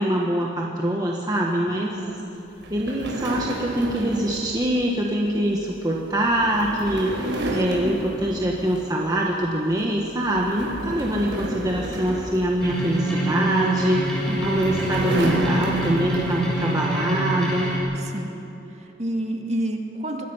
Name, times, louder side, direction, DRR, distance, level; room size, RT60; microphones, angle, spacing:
voice 1, 0.0-2.0 2.7-17.7, right 1 dB, 20° right, -2 dB, 1.5 m, -24 dB
voice 2, 1.8-2.2 7.5-8.1 10.8-11.0 14.3-14.7 18.0-18.4 18.7-20.3, right 1 dB, 35° right, 2 dB, 2.1 m, -30 dB
sound 1, 2.6-9.1 9.5-9.8 10.2-13.2 14.0-16.5, right 1 dB, 70° right, 4.6 m, -32 dB
sound 2, 12.6-17.8, right 1 dB, 5° left, 7.2 m, -25 dB
26.5 x 21.5 x 5.8 m, 3.0 s
head